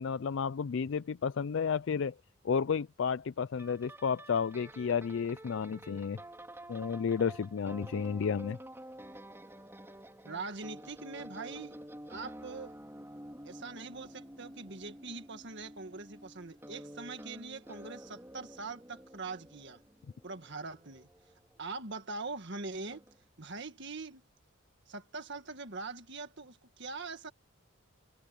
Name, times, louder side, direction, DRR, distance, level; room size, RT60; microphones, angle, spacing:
voice 1, 0.0-2.1 2.4-6.2 6.7-8.6, left 6 dB, 60° left, 0.4 m, -32 dB
sound 1, 3.6-22.0 22.9-23.2, right 1 dB, 10° right, 4.4 m, -50 dB
voice 2, 10.2-11.8 12.1-12.8 13.4-19.8 20.2-21.1 21.6-23.0 23.4-24.2 24.9-27.3, right 3 dB, 55° right, 1.8 m, -42 dB
head